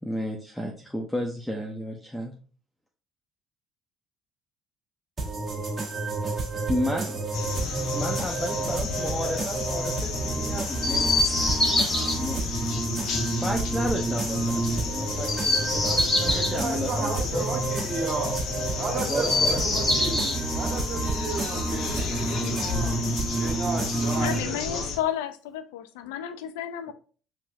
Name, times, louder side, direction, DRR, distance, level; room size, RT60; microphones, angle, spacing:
voice 1, 0.0-2.3 6.7-7.2 7.9-11.4 12.2-12.4 13.3-17.4 19.1-19.6, equal, 5° left, 0.8 m, -32 dB
sound 1, 5.2-24.4, right 3 dB, 30° right, 1.6 m, -30 dB
sound 2, 7.3-25.0, left 6 dB, 65° left, 0.7 m, -33 dB
Chirp tweet, 10.8-12.1 15.1-16.6 19.0-20.4 21.8-22.9 24.0-24.9, left 2 dB, 35° left, 2.1 m, -26 dB
voice 2, 16.3-18.4 18.8-23.0 23.4-24.9, right 4 dB, 55° right, 1.2 m, -34 dB
voice 3, 24.2-26.9, left 10 dB, 85° left, 0.4 m, -32 dB
4.5 x 3.4 x 2.5 m
supercardioid pair, 70°, 0 cm